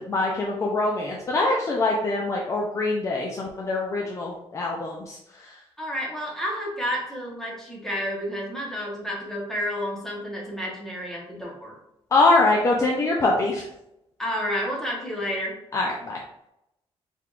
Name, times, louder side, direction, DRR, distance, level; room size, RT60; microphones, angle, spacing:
voice 1, 0.0-5.6 12.1-13.7 15.7-16.2, left 2 dB, 30° left, -2 dB, 0.5 m, -24 dB
voice 2, 5.8-11.8 14.2-15.6, equal, 5° left, -3 dB, 1.1 m, -30 dB
4.7 x 3.5 x 2.5 m, 0.83 s
cardioid pair, 165°, 10 cm